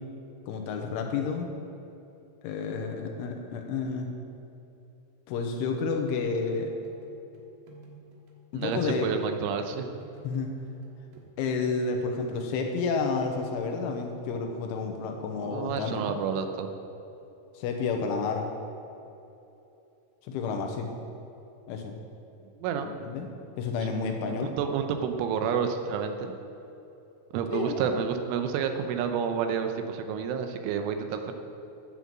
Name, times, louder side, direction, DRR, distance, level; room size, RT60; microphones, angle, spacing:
voice 1, 0.5-1.5 2.4-4.1 5.3-6.7 8.5-9.1 10.2-10.5 11.4-16.1 17.5-18.5 20.3-20.9 21.7-22.0 22.8-23.3 23.6-24.5 27.5-27.9, left 4 dB, 80° left, 4 dB, 3.2 m, -30 dB
sound 1, 6.2-9.7 10.0-14.0, right 2 dB, 65° right, 2.5 m, -52 dB
voice 2, 8.5-9.9 15.4-16.7 22.6-22.9 23.9-26.4 27.3-31.3, right 7 dB, 80° right, 6 dB, 3.1 m, -30 dB
11.0 x 7.7 x 7.4 m, 2.9 s
omnidirectional pair, 5.8 m